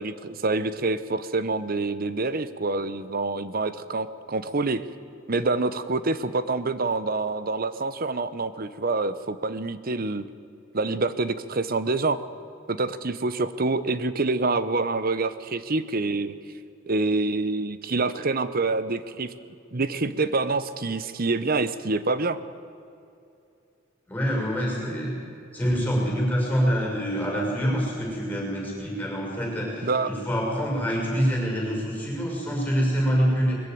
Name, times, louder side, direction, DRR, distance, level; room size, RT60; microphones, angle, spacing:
voice 1, 0.0-4.8 5.3-10.2 10.7-12.2 12.7-16.4 16.9-19.3 19.7-22.4 29.8-30.1, right 3 dB, 50° right, 13 dB, 0.9 m, -26 dB
voice 2, 24.1-25.2 25.5-33.6, equal, 10° left, -2 dB, 6.0 m, -26 dB
21.0 x 15.0 x 9.4 m, 2.6 s
head